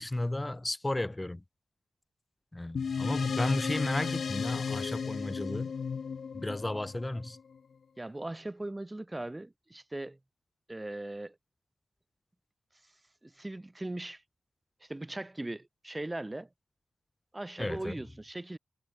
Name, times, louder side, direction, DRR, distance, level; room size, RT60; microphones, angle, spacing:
voice 1, 0.0-1.4 2.5-5.7 6.3-7.4 17.6-17.9, left 1 dB, 20° left, 4.6 m, -33 dB
sound 1, 2.8-7.6, left 6 dB, 75° left, 5.4 m, -34 dB
voice 2, 8.0-10.2 10.7-11.4 13.2-14.2 14.8-16.5 17.3-18.6, right 2 dB, 20° right, 4.3 m, -39 dB
cardioid pair, 65°, 0 cm